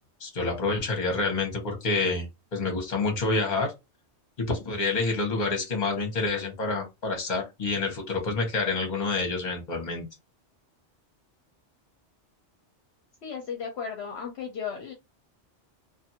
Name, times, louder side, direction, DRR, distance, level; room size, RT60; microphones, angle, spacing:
voice 1, 0.2-2.3 2.5-3.7 4.4-10.1, left 3 dB, 40° left, 1.1 m, -28 dB
voice 2, 13.2-14.9, left 6 dB, 65° left, 0.9 m, -35 dB
2.6 x 2.5 x 2.8 m
omnidirectional pair, 1.2 m